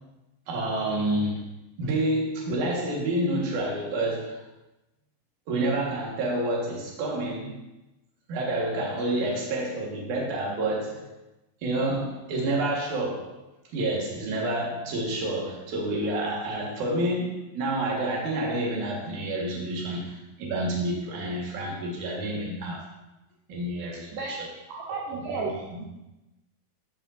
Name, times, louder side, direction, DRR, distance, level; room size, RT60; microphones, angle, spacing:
voice 1, 0.5-1.4 1.8-4.4 5.5-7.6 8.3-11.1 11.6-13.4 13.7-22.8 23.5-24.9 25.3-25.8, right 1 dB, 60° right, -3 dB, 2.6 m, -29 dB
voice 2, 24.1-24.6 24.9-25.9, right 3 dB, 80° right, -2 dB, 2.5 m, -34 dB
12.5 x 5.5 x 2.6 m, 0.98 s
omnidirectional pair, 4.6 m